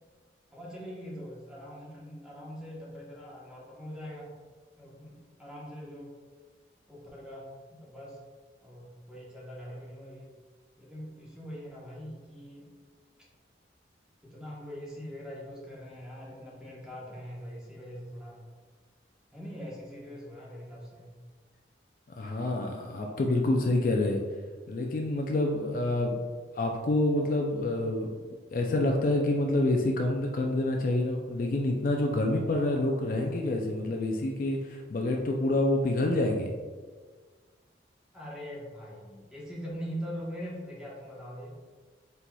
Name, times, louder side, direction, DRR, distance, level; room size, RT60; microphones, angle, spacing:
voice 1, 0.5-4.4 4.8-6.1 6.9-8.2 8.6-10.3 10.8-12.7 14.2-18.4 19.3-21.1 38.1-41.6, equal, 5° right, -6 dB, 0.9 m, -42 dB
voice 2, 22.2-24.2 24.7-26.2 26.5-28.1 28.5-36.5, left 2 dB, 45° left, 1 dB, 0.4 m, -27 dB
4.4 x 4.0 x 2.2 m, 1.5 s
head